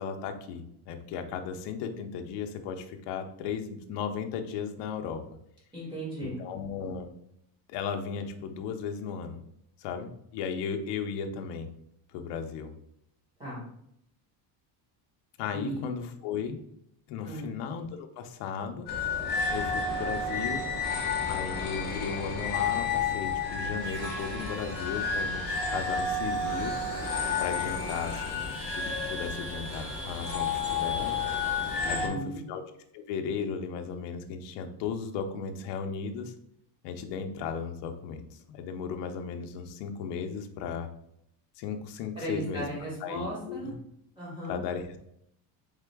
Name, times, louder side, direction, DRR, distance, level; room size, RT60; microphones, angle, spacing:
voice 1, 0.0-5.2 6.2-7.1 7.7-9.4 9.8-11.7 12.1-12.7 15.4-16.6 17.1-18.9 19.5-20.7 21.2-26.7 27.4-31.2 31.9-32.6 32.9-36.3 36.8-40.9 41.6-42.7 43.0-43.7 44.5-45.0, left 6 dB, 65° left, 6 dB, 0.6 m, -36 dB
voice 2, 5.7-6.4 13.4-13.6 15.5-15.8 17.2-17.5 31.8-32.4 42.2-43.7 44.2-44.6, right 1 dB, 10° right, -7 dB, 1.7 m, -36 dB
sound 1, 18.9-32.1, left 4 dB, 20° left, 1.0 m, -31 dB
sound 2, 23.8-32.0, equal, 30° right, 1.8 m, -43 dB
3.8 x 3.6 x 3.4 m, 0.73 s
cardioid pair, 180°, 46 cm